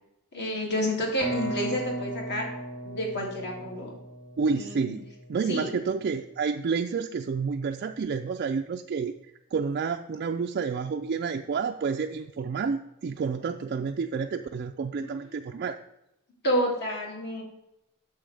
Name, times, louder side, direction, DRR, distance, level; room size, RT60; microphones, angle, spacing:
voice 1, 0.3-2.5 2.8-4.0 4.5-5.0 5.5-5.7 15.0-15.1 15.5-15.6 16.4-17.4, equal, 50° left, -1 dB, 2.4 m, -29 dB
sound 1, 1.2-5.0, right 1 dB, 85° left, 3.1 m, -36 dB
voice 2, 4.4-9.1 9.5-15.8, right 5 dB, 45° right, 4 dB, 0.3 m, -29 dB
8.9 x 6.9 x 3.3 m, 0.88 s
head